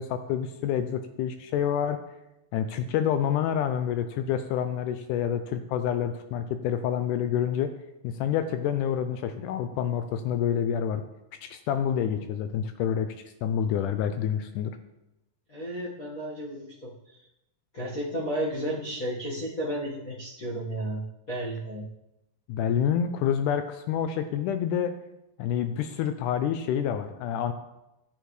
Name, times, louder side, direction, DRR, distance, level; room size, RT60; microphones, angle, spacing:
voice 1, 0.0-2.0 2.5-7.7 8.0-11.0 11.4-13.2 13.4-14.7 22.5-24.9 25.4-27.5, left 9 dB, 80° left, 9 dB, 1.9 m, -28 dB
voice 2, 15.5-17.2 17.7-21.8, right 1 dB, 45° left, -7 dB, 1.1 m, -33 dB
10.5 x 8.1 x 3.2 m, 0.91 s
omnidirectional pair, 4.0 m